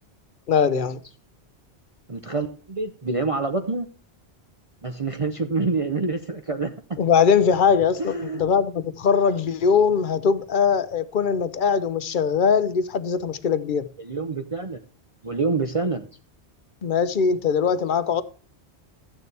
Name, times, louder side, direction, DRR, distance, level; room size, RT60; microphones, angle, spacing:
voice 1, 0.5-1.0 7.0-13.9 16.8-18.2, left 6 dB, 50° left, 0.9 m, -21 dB
voice 2, 2.1-3.9 4.8-7.0 8.0-8.4 14.0-14.8 15.2-16.1, right 3 dB, 35° right, 0.8 m, -27 dB
13.5 x 9.4 x 3.3 m
omnidirectional pair, 1.1 m